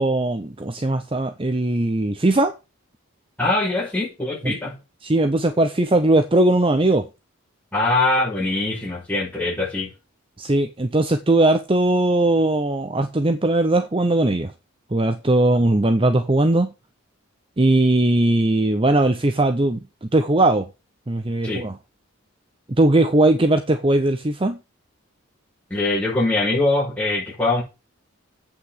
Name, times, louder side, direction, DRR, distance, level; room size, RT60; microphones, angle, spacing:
voice 1, 0.0-2.5 4.4-4.5 5.0-7.1 10.4-14.5 14.9-16.7 17.6-19.8 20.1-20.7 21.1-21.8 22.8-24.6, right 2 dB, 25° right, 0.6 m, -19 dB
voice 2, 3.4-4.8 7.7-9.9 21.4-21.6 25.7-27.6, left 2 dB, 5° left, 5.6 m, -22 dB
8.2 x 5.9 x 7.3 m
head